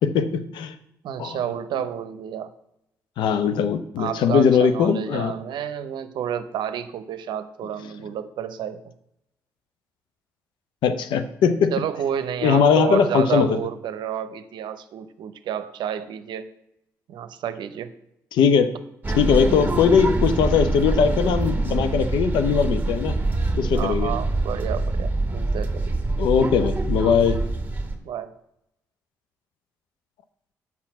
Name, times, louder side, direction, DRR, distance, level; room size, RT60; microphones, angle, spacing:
voice 1, 0.0-0.7 1.2-1.4 3.2-5.3 10.8-11.7 12.4-13.6 18.3-18.7 19.2-23.2 23.6-24.1 26.2-27.4, left 6 dB, 70° left, 10 dB, 0.7 m, -20 dB
voice 2, 1.0-2.5 4.0-8.9 11.7-16.5 17.1-17.9 23.7-25.8 28.0-28.4, right 9 dB, 65° right, 12 dB, 0.7 m, -30 dB
sound 1, 19.0-28.0, right 2 dB, 20° right, 1.9 m, -25 dB
6.1 x 5.8 x 7.1 m, 0.81 s
hypercardioid pair, 50°, 8 cm